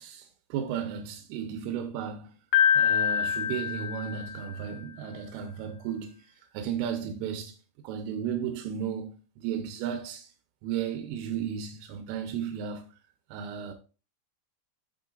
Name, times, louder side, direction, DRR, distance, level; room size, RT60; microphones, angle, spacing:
voice 1, 0.0-2.4 2.8-6.2 6.5-7.6 7.8-10.3 10.6-12.9 13.3-13.7, right 8 dB, 90° right, 3.4 m, -34 dB
Piano, 2.5-4.6, left 8 dB, 75° left, 3.1 m, -25 dB
9.0 x 7.5 x 2.4 m
omnidirectional pair, 5.5 m